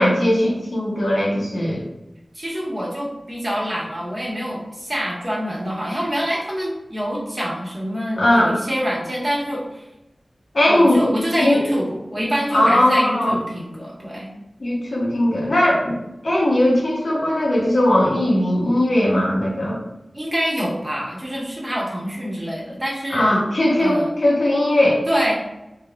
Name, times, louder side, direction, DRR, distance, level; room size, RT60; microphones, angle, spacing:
voice 1, 0.0-1.8 8.2-8.5 10.5-11.0 11.4-11.6 12.5-13.4 14.6-16.0 16.2-19.8 23.1-25.0, left 1 dB, 75° left, -3 dB, 0.8 m, -18 dB
voice 2, 2.3-9.8 10.7-14.3 20.1-23.5 23.8-24.1 25.1-25.3, equal, 35° right, -6 dB, 1.1 m, -26 dB
3.3 x 2.4 x 2.2 m, 0.91 s
wide cardioid pair, 45°, 0 cm